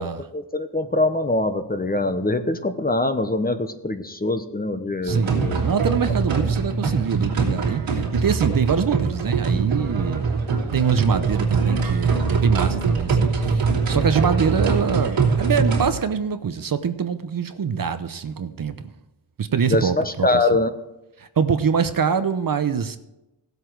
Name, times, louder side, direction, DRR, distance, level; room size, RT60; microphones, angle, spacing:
voice 1, 0.3-5.6 19.7-20.7, left 2 dB, 20° left, 0.9 m, -23 dB
voice 2, 5.0-10.5 10.7-18.8 19.4-20.6 21.2-23.0, right 6 dB, 45° right, 0.8 m, -24 dB
sound 1, 5.1-15.9, right 4 dB, 85° right, 3.1 m, -22 dB
16.5 x 8.0 x 4.7 m
wide cardioid pair, 105°, 46 cm